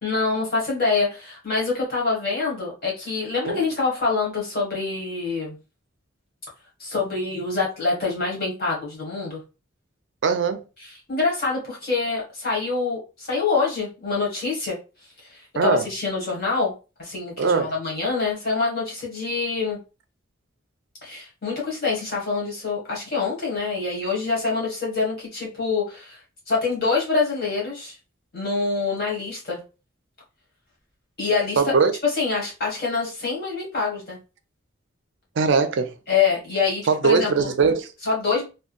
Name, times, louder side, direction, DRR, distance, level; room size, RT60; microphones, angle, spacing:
voice 1, 0.0-5.5 6.8-9.4 10.8-14.8 15.3-16.7 17.0-19.8 21.0-26.2 26.5-27.9 28.3-29.6 31.2-31.7 32.0-34.2 36.1-37.5 38.0-38.4, left 4 dB, 50° left, 1.7 m, -25 dB
voice 2, 10.2-10.6 15.6-15.8 17.4-17.7 31.6-31.9 35.4-35.9 36.9-37.9, right 5 dB, 65° right, 0.4 m, -20 dB
3.6 x 2.2 x 2.4 m
head